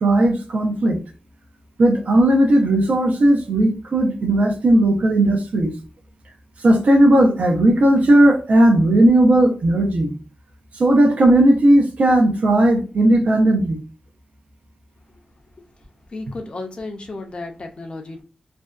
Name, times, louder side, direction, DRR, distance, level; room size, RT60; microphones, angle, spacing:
voice 1, 0.0-1.0 1.8-5.7 6.6-10.2 10.8-13.8, right 1 dB, 70° right, 3 dB, 0.6 m, -16 dB
voice 2, 16.1-18.2, left 2 dB, 40° left, 3 dB, 0.5 m, -33 dB
2.5 x 2.2 x 2.3 m, 0.35 s
wide cardioid pair, 130°, 3 cm